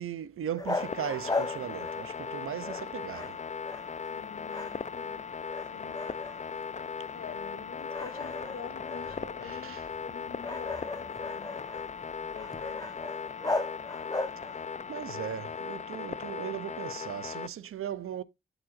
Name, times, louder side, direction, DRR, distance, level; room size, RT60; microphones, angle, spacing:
voice 1, 0.0-3.4 9.4-9.8 14.9-18.2, right 10 dB, 85° right, 0.7 m, -37 dB
sound 1, 0.6-2.3 2.6-4.2 4.4-5.2 5.5-6.7 7.1-7.3 7.9-14.7, left 2 dB, 15° left, 1.1 m, -37 dB
sound 2, 0.8-17.5, left 6 dB, 35° left, 0.6 m, -38 dB
voice 2, 4.1-5.3 5.6-6.3 7.1-11.5 12.3-13.1, left 6 dB, 80° left, 1.4 m, -47 dB
12.5 x 4.9 x 2.5 m
cardioid pair, 55°, 21 cm